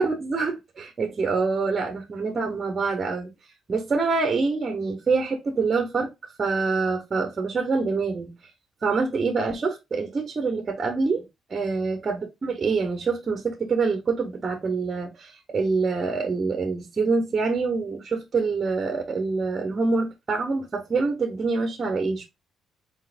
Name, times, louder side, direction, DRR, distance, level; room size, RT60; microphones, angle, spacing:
voice 1, 0.0-3.3 3.7-8.3 8.8-22.2, right 4 dB, 40° right, 1.1 m, -26 dB
4.3 x 3.7 x 2.5 m
cardioid pair, 90°, 0 cm